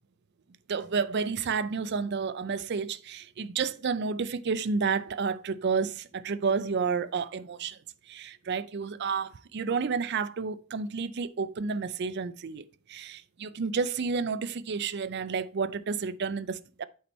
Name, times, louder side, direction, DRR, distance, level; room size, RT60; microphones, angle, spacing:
voice 1, 0.7-7.8 8.1-16.8, right 5 dB, 50° right, 0.4 m, -30 dB
8.5 x 4.4 x 4.2 m
head